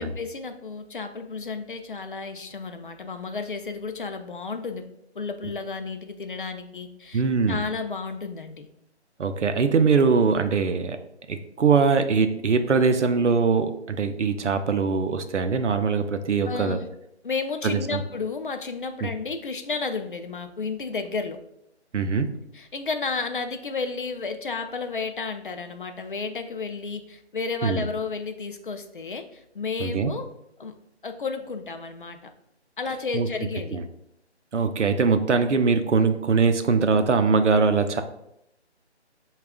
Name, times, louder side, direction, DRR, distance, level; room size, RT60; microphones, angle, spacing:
voice 1, 0.0-4.8 5.1-7.2 7.5-8.7 16.4-16.8 17.2-21.4 22.5-30.3 30.6-30.7 31.0-32.3 32.8-33.8, left 4 dB, 50° left, 7 dB, 0.4 m, -32 dB
voice 2, 7.1-7.6 9.2-11.0 11.3-16.8 17.6-18.0 19.0-19.1 21.9-22.3 27.6-27.9 29.8-30.1 33.1-33.3 33.7-33.8 34.5-38.0, right 5 dB, 90° right, 8 dB, 0.6 m, -22 dB
5.0 x 2.3 x 3.5 m, 0.80 s
figure-of-eight pair, 160°, 35 cm